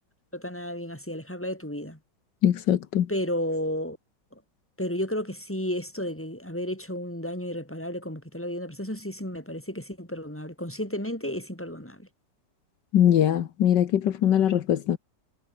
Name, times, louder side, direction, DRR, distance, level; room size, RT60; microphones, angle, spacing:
voice 1, 0.3-2.0 3.1-4.0 4.8-12.1, equal, 5° left, 6.1 m, -32 dB
voice 2, 2.4-3.1 12.9-15.0, left 10 dB, 80° left, 1.7 m, -21 dB
omnidirectional pair, 1.9 m